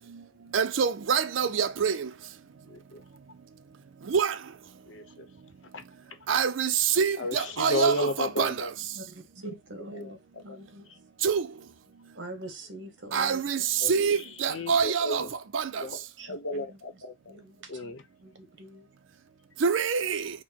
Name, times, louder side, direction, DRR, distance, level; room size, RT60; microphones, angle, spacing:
voice 1, 0.5-1.9 4.1-4.3 6.3-6.7 7.0-8.5 11.2-11.4 13.1-13.6 13.9-15.2 15.5-15.6 19.6-20.2, right 6 dB, 90° right, 0.5 m, -25 dB
voice 2, 2.7-3.0 4.8-5.3 5.7-5.8 6.1-6.2 7.2-8.7 10.0-10.1 13.8-15.3 15.8-17.4 17.7-18.0, left 1 dB, 80° left, 0.9 m, -33 dB
voice 3, 8.9-11.1 12.1-13.4 16.2-16.8 17.3-17.9 18.2-18.9, right 1 dB, 65° right, 1.1 m, -44 dB
4.3 x 2.1 x 4.5 m
head